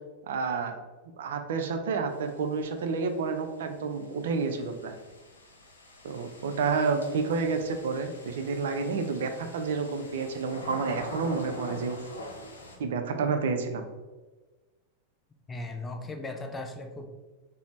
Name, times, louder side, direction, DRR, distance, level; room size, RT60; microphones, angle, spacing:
voice 1, 0.3-0.7 1.2-4.9 6.0-12.0 12.8-13.9, right 4 dB, 60° right, 6 dB, 0.3 m, -30 dB
sound 1, 2.1-12.8, left 1 dB, 75° left, 0.6 m, -45 dB
voice 2, 15.5-17.1, left 2 dB, 15° left, 5 dB, 0.4 m, -37 dB
3.8 x 2.0 x 3.1 m, 1.2 s
figure-of-eight pair, 90°, 0 cm